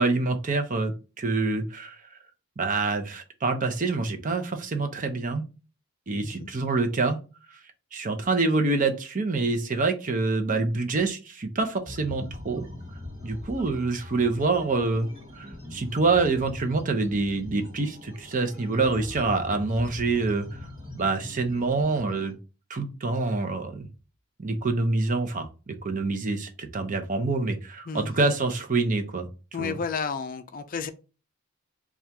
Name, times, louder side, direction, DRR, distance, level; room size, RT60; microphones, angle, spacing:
voice 1, 0.0-2.0 2.6-5.4 6.1-7.2 7.9-12.7 13.2-15.1 15.3-20.6 20.9-22.4 22.7-23.9 24.4-29.3 29.6-29.7, right 3 dB, 40° right, 0.7 m, -26 dB
sound 1, 11.8-22.3, left 2 dB, 25° right, 1.6 m, -42 dB
voice 2, 29.5-30.9, left 5 dB, 40° left, 0.4 m, -32 dB
4.3 x 2.4 x 3.4 m
head